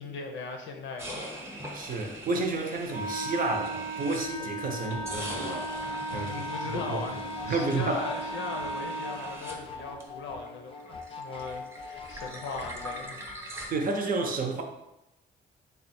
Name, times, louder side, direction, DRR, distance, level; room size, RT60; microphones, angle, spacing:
voice 1, 0.0-1.4 6.1-7.2 7.5-13.2, left 4 dB, 70° left, 3 dB, 0.7 m, -39 dB
sound 1, 1.0-4.5 4.9-10.5 10.7-13.7, right 1 dB, 15° right, 0.8 m, -42 dB
voice 2, 1.7-5.7 6.1-6.4 6.7-7.0 7.5-8.0 13.7-14.6, right 3 dB, 45° right, 3 dB, 0.7 m, -30 dB
Wind instrument woodwind instrument, 2.9-9.3, right 1 dB, 80° right, 0.6 m, -36 dB
sound 2, 4.9-13.1, left 4 dB, 25° left, 0.5 m, -43 dB
3.5 x 2.3 x 4.2 m, 0.90 s
cardioid pair, 90°, 20 cm